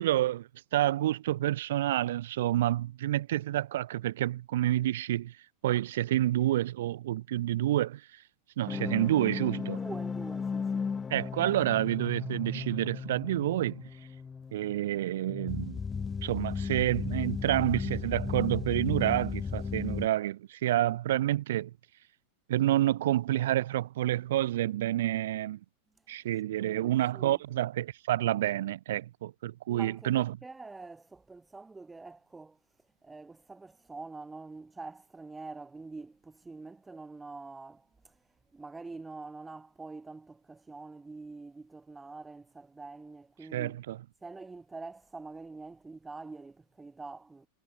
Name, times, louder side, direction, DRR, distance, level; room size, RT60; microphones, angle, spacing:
voice 1, 0.0-5.3 5.6-8.0 8.6-9.8 11.1-13.8 14.5-15.8 16.2-21.7 22.5-25.6 26.1-30.4 43.5-44.0, right 13 dB, 55° right, 0.6 m, -29 dB
sound 1, 8.7-20.1, left 5 dB, 15° left, 0.8 m, -35 dB
voice 2, 9.6-10.9 26.6-27.4 29.7-32.6 33.0-38.2 38.5-43.8 44.2-47.5, right 3 dB, 10° right, 2.2 m, -45 dB
figure-of-eight pair, 90°, 0 cm